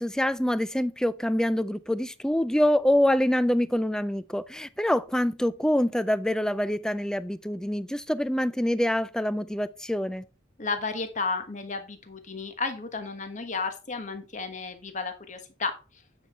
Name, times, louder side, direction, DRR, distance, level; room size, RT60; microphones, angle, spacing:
voice 1, 0.0-10.2, left 1 dB, 5° left, 0.3 m, -25 dB
voice 2, 10.6-15.8, left 4 dB, 40° left, 1.3 m, -33 dB
8.9 x 5.4 x 4.3 m
head